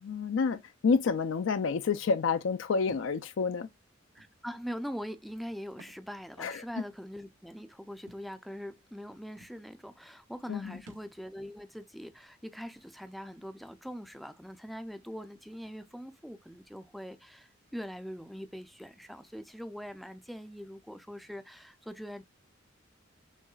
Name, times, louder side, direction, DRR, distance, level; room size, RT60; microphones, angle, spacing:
voice 1, 0.0-3.7 6.4-6.6 10.5-10.8, left 5 dB, 70° left, 0.4 m, -29 dB
Thump thud, 2.9-3.1 4.2-4.3 5.7-6.0 6.4-6.5 8.1-8.3 9.1-9.2 9.4-9.6 10.8-11.1, right 1 dB, 70° right, 0.9 m, -53 dB
voice 2, 4.1-22.2, equal, ahead, 0.4 m, -42 dB
6.4 x 3.1 x 2.3 m
head